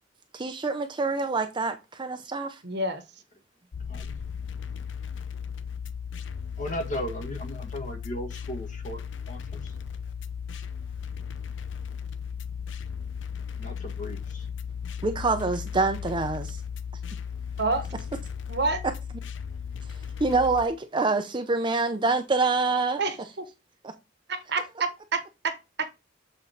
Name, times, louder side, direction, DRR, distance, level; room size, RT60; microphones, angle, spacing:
voice 1, 0.3-2.6 15.0-16.6 20.2-23.0 23.8-23.9, right 3 dB, 25° right, 0.5 m, -26 dB
voice 2, 2.6-3.0 17.6-17.9 18.5-18.8 23.0-23.5 24.3-25.9, right 3 dB, 65° right, 1.1 m, -28 dB
sound 1, 3.7-20.7, left 7 dB, 90° left, 0.6 m, -36 dB
voice 3, 6.6-9.7 13.6-14.5, equal, 45° left, 1.6 m, -36 dB
7.5 x 4.2 x 3.9 m
head